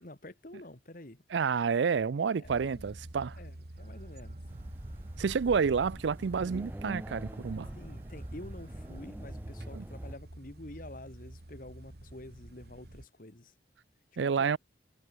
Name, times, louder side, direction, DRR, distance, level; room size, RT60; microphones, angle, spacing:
voice 1, 0.0-1.2 2.2-3.0 3.4-4.4 7.7-13.5 14.1-14.6, left 1 dB, 50° left, 2.2 m, -48 dB
voice 2, 1.3-3.4 5.2-7.7 9.7-9.8 14.2-14.6, right 6 dB, 80° right, 0.4 m, -29 dB
sound 1, 2.4-13.1, right 1 dB, 60° right, 2.0 m, -48 dB
sound 2, 3.8-9.1, right 3 dB, 35° right, 2.3 m, -65 dB
sound 3, 4.5-10.1, right 1 dB, 10° right, 0.5 m, -44 dB
head